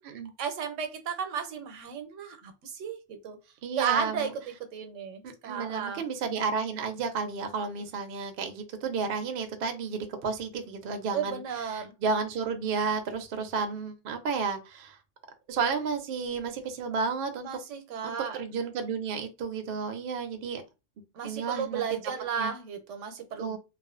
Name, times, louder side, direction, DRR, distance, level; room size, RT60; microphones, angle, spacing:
voice 1, 0.4-3.4 3.7-6.0 11.1-11.9 17.4-18.4 21.1-23.6, right 7 dB, 85° right, 0.9 m, -34 dB
voice 2, 3.6-4.3 5.2-15.0 15.5-17.5 18.0-20.6 21.2-21.8 22.4-22.5 23.4-23.6, right 5 dB, 60° right, 0.6 m, -32 dB
2.4 x 2.3 x 2.4 m
omnidirectional pair, 1.2 m